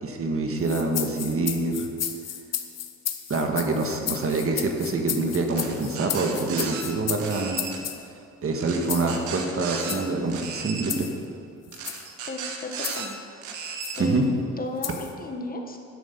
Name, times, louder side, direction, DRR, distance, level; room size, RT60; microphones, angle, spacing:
voice 1, 0.0-1.9 3.3-7.6 8.4-11.1 14.0-14.2, right 3 dB, 45° right, 3 dB, 1.6 m, -26 dB
sound 1, 0.6-8.0 8.9-9.1 9.8-10.0 10.9-11.1 11.7-12.1 12.8-13.1 13.8-14.0 14.8-15.1, left 9 dB, 55° left, 1.0 m, -33 dB
sound 2, 5.5-6.8 7.2-7.8 8.6-10.0 10.3-10.9 11.7-13.1 13.4-14.0, right 6 dB, 85° right, 1.3 m, -35 dB
voice 2, 12.3-13.2 13.9-14.3 14.6-15.8, left 2 dB, 30° left, 3 dB, 1.3 m, -34 dB
10.5 x 8.2 x 6.8 m, 2.5 s
cardioid pair, 90°, 30 cm